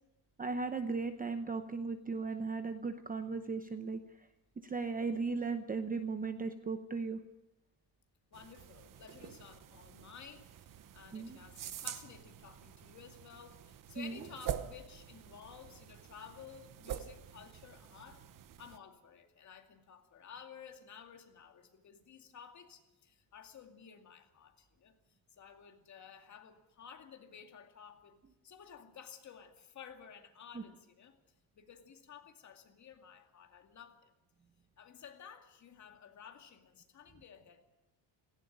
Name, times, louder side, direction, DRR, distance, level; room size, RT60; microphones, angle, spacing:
voice 1, 0.4-4.3 4.6-7.2 11.1-11.4 14.0-14.2 30.5-30.6, right 4 dB, 20° right, 0.8 m, -37 dB
voice 2, 8.3-18.3 18.6-25.0 25.3-31.2 31.5-34.1 34.8-37.7, left 7 dB, 35° left, 2.3 m, -54 dB
sound 1, 8.3-18.8, right 10 dB, 45° right, 1.1 m, -46 dB
17.5 x 16.5 x 9.9 m
cardioid pair, 160°, 46 cm